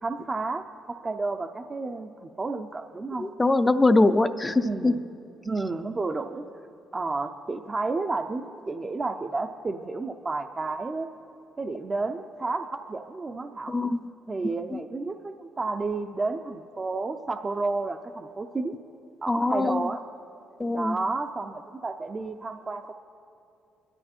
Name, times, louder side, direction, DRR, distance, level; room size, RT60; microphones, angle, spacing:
voice 1, 0.0-3.3 4.6-5.0 5.4-6.4 6.9-11.1 11.6-13.7 14.3-18.7 19.2-20.0 20.7-22.9, right 3 dB, 30° right, 5 dB, 0.6 m, -31 dB
voice 2, 3.2-4.9 13.7-14.1 14.7-14.8 19.3-19.9 20.6-21.0, left 2 dB, 20° left, 10 dB, 0.5 m, -23 dB
24.0 x 12.5 x 4.4 m, 2.7 s
cardioid pair, 90°, 0 cm